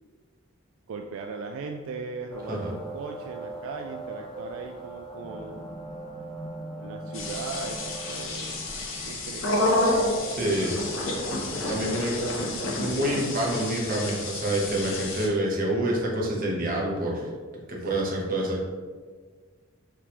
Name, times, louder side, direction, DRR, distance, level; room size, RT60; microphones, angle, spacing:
voice 1, 0.9-5.7 6.8-9.7 10.1-10.5 11.7-13.0 17.8-17.9, right 4 dB, 75° right, 3 dB, 0.3 m, -39 dB
sound 1, 2.3-10.8, right 2 dB, ahead, 0.5 m, -40 dB
sound 2, 7.1-15.3, left 2 dB, 65° left, 0.8 m, -29 dB
voice 2, 10.3-10.7 11.7-12.2 12.8-17.3 17.7-18.6, right 1 dB, 40° right, -2 dB, 0.9 m, -27 dB
4.8 x 3.5 x 2.9 m, 1.5 s
head